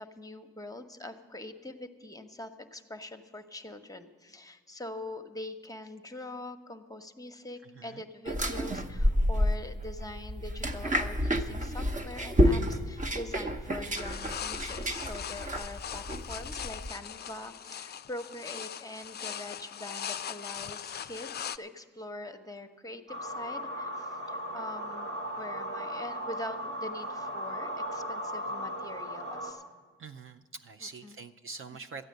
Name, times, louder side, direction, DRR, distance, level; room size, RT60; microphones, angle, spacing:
voice 1, 0.0-29.6 30.8-31.2 31.7-31.8, left 1 dB, 10° left, 7 dB, 0.9 m, -43 dB
sound 1, 8.3-16.9, equal, 25° right, 0.9 m, -29 dB
sound 2, 14.0-21.6, left 9 dB, 35° left, 0.4 m, -40 dB
sound 3, 23.1-29.5, equal, 80° right, 2.6 m, -37 dB
voice 2, 30.0-32.0, right 4 dB, 45° right, 6 dB, 0.5 m, -44 dB
13.0 x 9.1 x 6.6 m, 1.4 s
supercardioid pair, 65°, 30 cm